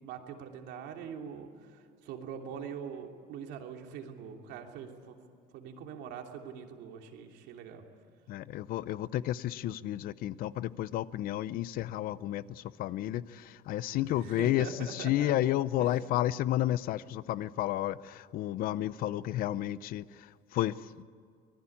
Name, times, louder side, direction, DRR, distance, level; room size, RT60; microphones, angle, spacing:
voice 1, 0.0-5.2 5.5-7.8 13.9-15.3 15.8-15.9, right 7 dB, 85° right, 3 dB, 3.0 m, -43 dB
voice 2, 8.3-21.0, left 13 dB, 55° left, 17 dB, 0.6 m, -32 dB
25.5 x 20.5 x 8.7 m, 2.2 s
cardioid pair, 175°, 17 cm